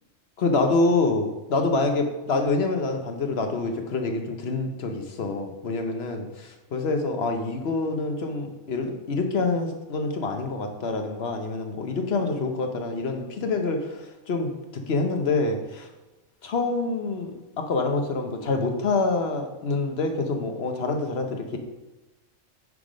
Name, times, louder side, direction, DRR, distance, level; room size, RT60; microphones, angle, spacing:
voice 1, 0.4-15.9 16.4-17.3 17.6-21.6, left 3 dB, 55° left, 5 dB, 1.0 m, -26 dB
9.6 x 3.5 x 5.0 m, 1.1 s
omnidirectional pair, 1.3 m